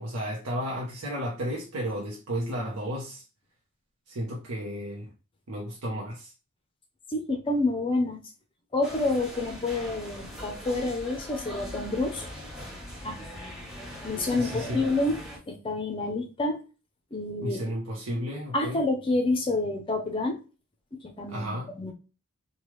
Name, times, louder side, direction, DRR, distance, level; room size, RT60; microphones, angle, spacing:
voice 1, 0.0-3.2 4.1-5.1 5.5-6.3 14.2-14.8 17.4-18.8 21.3-21.7, equal, 85° right, 0.7 m, -33 dB
voice 2, 7.1-8.2 8.7-12.3 13.0-13.2 14.0-15.2 15.5-16.6 17.1-17.6 18.5-20.4 21.0-21.9, left 2 dB, 25° left, 0.5 m, -28 dB
sound 1, 8.8-15.4, equal, 5° right, 0.9 m, -40 dB
3.1 x 2.2 x 3.0 m
head